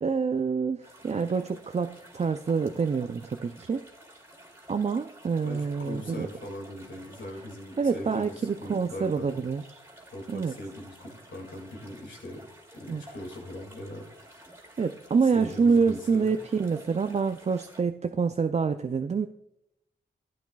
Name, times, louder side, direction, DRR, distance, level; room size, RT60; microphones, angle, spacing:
voice 1, 0.0-3.9 4.7-6.3 7.8-9.8 10.3-10.6 12.9-13.0 14.8-19.3, right 5 dB, 35° right, 8 dB, 0.4 m, -27 dB
sound 1, 0.8-17.8, right 1 dB, 15° right, 2.4 m, -52 dB
voice 2, 5.4-9.4 10.1-12.5 12.7-14.5 15.2-16.3, left 1 dB, 70° left, 1 dB, 2.1 m, -41 dB
11.5 x 8.5 x 2.3 m, 0.82 s
cardioid pair, 45°, 19 cm